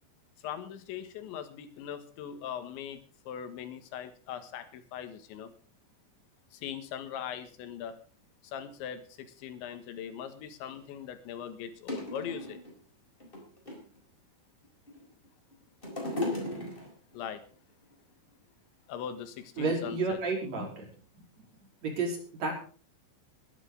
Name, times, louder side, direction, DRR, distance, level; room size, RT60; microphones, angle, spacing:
voice 1, 0.4-5.5 6.5-8.0 8.4-12.6 17.1-17.5 18.9-20.2, left 9 dB, 80° left, 9 dB, 3.8 m, -40 dB
sound 1, 10.7-10.8 11.5-11.6 11.9-12.7 13.2-14.0 14.6-15.3 15.5-17.1 17.9-18.0, left 1 dB, 10° left, 4.2 m, -36 dB
voice 2, 19.6-20.9 21.8-22.5, right 3 dB, 40° right, 0 dB, 5.2 m, -31 dB
21.0 x 11.0 x 3.9 m, 0.41 s
omnidirectional pair, 5.3 m